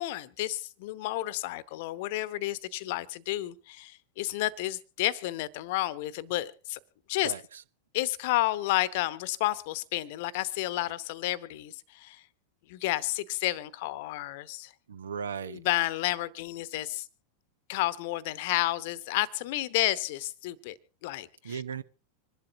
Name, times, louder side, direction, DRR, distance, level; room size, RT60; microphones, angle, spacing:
voice 1, 0.0-6.8 7.1-7.3 7.9-12.2 12.7-14.7 15.5-17.1 17.7-21.6, left 16 dB, 50° left, 0.9 m, -31 dB
voice 2, 7.2-7.6 14.9-15.6 21.4-21.8, right 7 dB, 65° right, 0.7 m, -36 dB
26.0 x 11.5 x 2.7 m
figure-of-eight pair, 90°, 0 cm